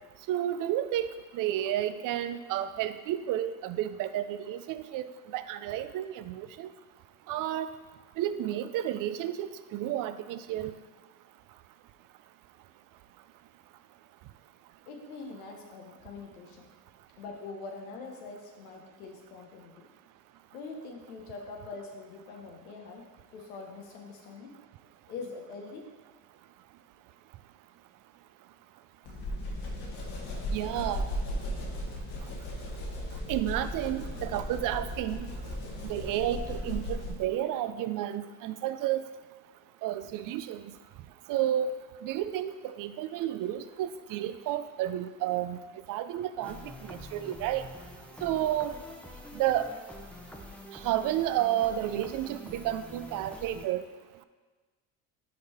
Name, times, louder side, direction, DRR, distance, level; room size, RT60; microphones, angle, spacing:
voice 1, 0.3-6.7 7.3-7.7 8.2-10.7 30.5-31.0 33.3-35.3 35.8-39.0 39.8-40.6 41.3-41.7 42.0-45.6 45.9-47.7 48.2-48.7 49.3-49.7 50.8-53.8, right 12 dB, 50° right, 12 dB, 0.5 m, -31 dB
voice 2, 14.9-16.7 17.2-19.8 20.5-23.0 23.3-24.5 25.1-25.8, left 4 dB, 85° left, 1 dB, 0.9 m, -43 dB
sound 1, 29.1-37.3, equal, 65° left, 1.6 m, -36 dB
sound 2, 46.4-53.7, left 1 dB, 5° left, 0.8 m, -46 dB
5.9 x 4.6 x 4.2 m, 1.3 s
hypercardioid pair, 75°, 42 cm